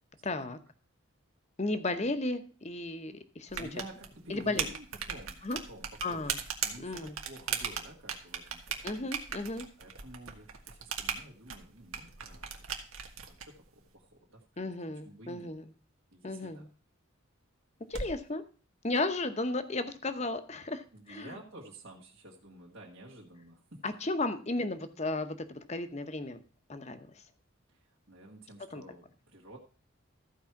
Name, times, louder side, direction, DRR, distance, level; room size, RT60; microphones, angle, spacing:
voice 1, 0.2-0.6 1.6-3.7 4.3-4.7 5.4-5.6 6.0-6.4 6.8-7.2 8.8-9.7 14.6-15.6 16.2-16.7 17.9-18.4 18.8-21.4 23.8-26.4 26.7-27.1 28.7-28.8, left 2 dB, 30° left, 9 dB, 0.9 m, -34 dB
sound 1, 3.5-13.5, right 7 dB, 90° right, 1.5 m, -38 dB
voice 2, 3.6-6.3 6.6-8.9 9.8-12.8 13.3-14.7 15.0-15.5 16.1-16.7 20.9-23.8 27.7-29.6, right 1 dB, 70° right, -3 dB, 1.8 m, -51 dB
sound 2, 12.0-18.3, right 1 dB, 50° right, 1.2 m, -51 dB
14.0 x 4.8 x 5.8 m, 0.38 s
head